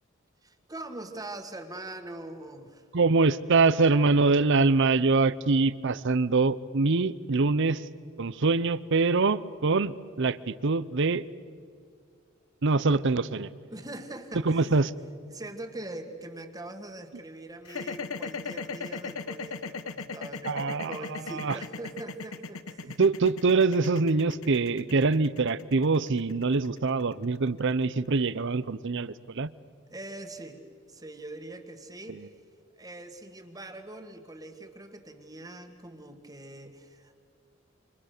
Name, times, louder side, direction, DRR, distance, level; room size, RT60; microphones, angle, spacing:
voice 1, 0.4-2.9 13.7-14.8 15.3-23.0 29.9-30.6 30.9-32.3 32.8-37.1, right 2 dB, 20° right, 6 dB, 1.9 m, -42 dB
voice 2, 2.9-7.8 8.2-11.2 12.6-13.5 14.4-14.9 20.5-20.9 21.3-21.6 23.0-29.5 32.1-32.2, right 3 dB, 60° right, 17 dB, 0.8 m, -24 dB
sound 1, 17.6-27.8, left 4 dB, 90° left, 1.1 m, -37 dB
29.0 x 26.0 x 6.7 m, 2.2 s
head